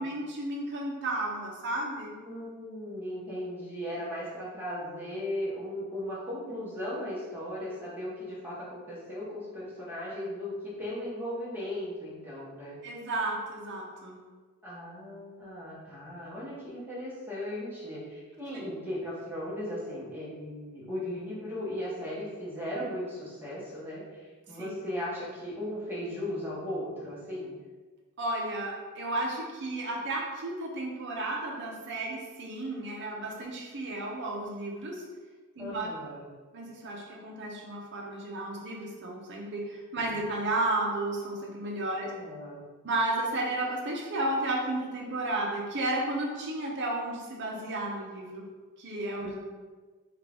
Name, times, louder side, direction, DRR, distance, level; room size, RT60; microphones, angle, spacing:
voice 1, 0.0-2.1 12.8-14.2 18.5-18.6 24.6-24.7 28.2-35.0 35.6-35.9 36.5-42.1 42.8-48.5 48.8-49.3, right 2 dB, 55° right, -1 dB, 0.7 m, -33 dB
voice 2, 2.2-12.8 14.6-27.6 35.6-36.2 40.0-40.1 42.0-42.6 49.2-49.4, left 1 dB, 10° right, -8 dB, 1.1 m, -37 dB
3.7 x 2.5 x 3.4 m, 1.4 s
head